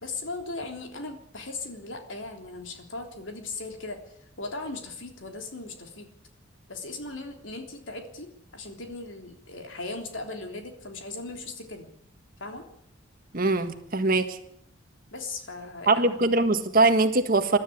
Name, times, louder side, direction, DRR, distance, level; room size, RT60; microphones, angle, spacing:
voice 1, 0.0-4.0 4.4-6.1 6.7-11.9 12.4-12.7 15.1-16.0, left 3 dB, 75° left, 4 dB, 3.3 m, -38 dB
voice 2, 13.3-14.4 15.9-17.6, right 2 dB, 50° right, 7 dB, 1.6 m, -22 dB
22.0 x 13.0 x 9.9 m, 0.75 s
head